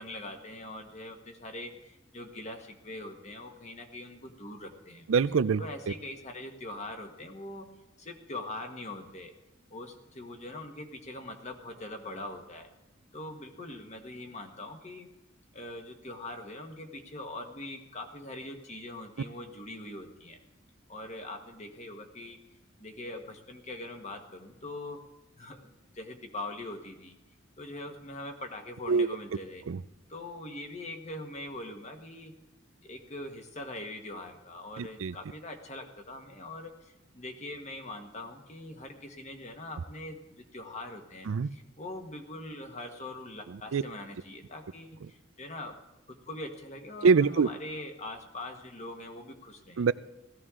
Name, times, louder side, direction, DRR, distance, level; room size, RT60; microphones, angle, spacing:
voice 1, 0.0-5.1 5.6-7.7 8.0-9.3 9.7-12.7 13.1-15.1 15.5-20.4 20.9-22.4 22.8-25.0 25.4-27.1 27.6-29.6 30.1-32.3 32.8-45.8 46.1-49.8, left 1 dB, 35° left, 4 dB, 1.4 m, -42 dB
voice 2, 5.1-5.6 28.9-29.1 29.7-29.8 34.8-35.1 41.3-41.5 43.7-43.8 47.0-47.5 49.8-49.9, right 5 dB, 80° right, 17 dB, 0.4 m, -24 dB
17.0 x 14.0 x 3.7 m, 0.95 s
head